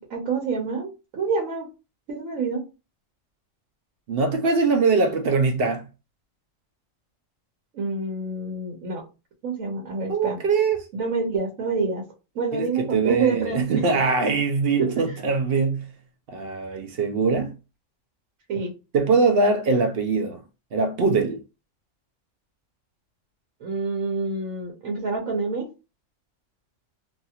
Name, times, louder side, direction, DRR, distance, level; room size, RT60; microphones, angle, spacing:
voice 1, 0.1-1.7 2.1-2.6 7.7-9.0 9.4-10.4 10.9-12.0 12.3-13.8 14.8-14.9 18.5-18.7 23.6-25.7, right 4 dB, 85° right, 1.2 m, -27 dB
voice 2, 4.1-5.9 10.1-10.9 12.5-15.9 16.3-17.5 18.9-20.4 20.7-21.4, right 4 dB, 60° right, 0.7 m, -22 dB
2.8 x 2.7 x 2.3 m
omnidirectional pair, 1.4 m